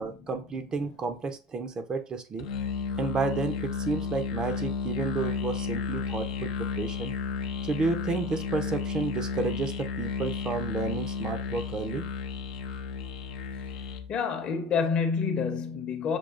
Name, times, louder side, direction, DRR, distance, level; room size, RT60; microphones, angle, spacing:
voice 1, 0.0-2.5 3.0-7.1 7.6-12.1, right 3 dB, 25° right, 0.4 m, -31 dB
Musical instrument, 2.4-14.1, left 5 dB, 90° left, 0.6 m, -33 dB
voice 2, 14.1-16.2, left 5 dB, 40° left, 0.7 m, -28 dB
6.0 x 2.3 x 2.4 m
supercardioid pair, 135°, 3 cm